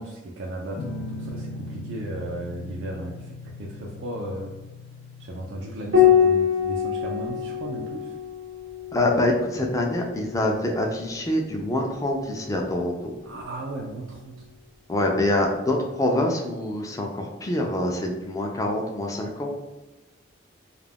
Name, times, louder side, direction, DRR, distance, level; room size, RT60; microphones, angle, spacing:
voice 1, 0.0-4.6 5.2-8.1 13.2-14.4, right 1 dB, 70° right, -2 dB, 0.4 m, -35 dB
Guitar, 0.8-6.0, left 2 dB, 90° left, 0.4 m, -38 dB
Piano, 5.9-10.8 12.4-13.2, left 8 dB, 90° right, 0.9 m, -24 dB
voice 2, 8.9-13.2 14.9-19.5, left 1 dB, 15° left, 1 dB, 0.3 m, -25 dB
2.4 x 2.1 x 3.3 m, 1.1 s
head